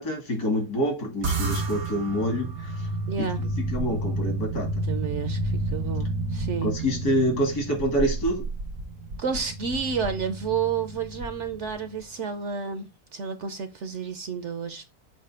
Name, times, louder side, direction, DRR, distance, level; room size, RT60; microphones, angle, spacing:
voice 1, 0.0-2.8 3.2-4.7 6.6-8.4, equal, 75° left, 2.7 m, -27 dB
sound 1, 1.2-11.8, right 2 dB, 90° right, 1.8 m, -31 dB
voice 2, 3.1-3.4 4.8-6.7 9.2-14.9, right 6 dB, 60° right, 0.8 m, -31 dB
7.5 x 2.7 x 5.6 m
omnidirectional pair, 1.7 m